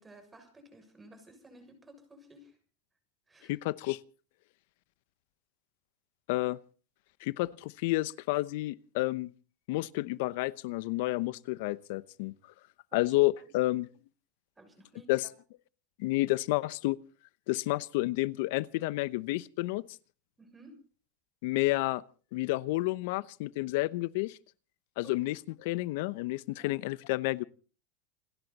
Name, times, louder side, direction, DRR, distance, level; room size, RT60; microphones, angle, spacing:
voice 1, 0.0-2.6 3.3-3.5 12.9-13.1 13.5-13.6 14.6-15.1 20.4-20.8 25.0-25.2 26.6-26.7, right 1 dB, 15° right, 6.7 m, -55 dB
voice 2, 3.5-4.0 6.3-6.6 7.2-9.3 9.7-12.3 12.9-13.9 15.1-15.2 16.0-17.0 17.5-19.8 21.4-22.0 22.3-24.4 25.0-27.4, left 20 dB, 70° left, 0.8 m, -30 dB
29.0 x 11.0 x 4.1 m
hypercardioid pair, 100°, 0 cm